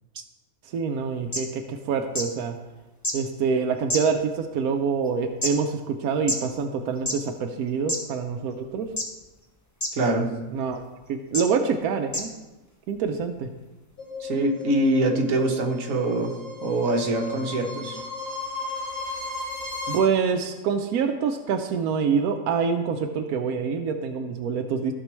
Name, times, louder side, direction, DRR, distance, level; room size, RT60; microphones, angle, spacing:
voice 1, 0.7-2.5 3.1-8.9 10.5-10.8 11.1-12.3 12.9-13.5 19.9-24.9, right 6 dB, 90° right, 5 dB, 1.1 m, -26 dB
sound 1, 1.0-1.1 1.3-1.4 2.1-2.2 3.0-3.1 3.9-4.4 5.0-5.5 6.3-6.4 7.0-7.2 7.9-8.0 9.0-9.3 9.8-9.9 10.7-10.8 11.3-11.4 12.1-12.2 13.1-13.2, left 1 dB, 15° left, 1.0 m, -27 dB
voice 2, 10.0-10.3 14.2-18.0, right 2 dB, 65° right, 2 dB, 1.4 m, -24 dB
sound 2, 14.0-20.0, left 3 dB, 85° left, 3.5 m, -35 dB
15.0 x 6.0 x 3.1 m, 1.1 s
omnidirectional pair, 1.5 m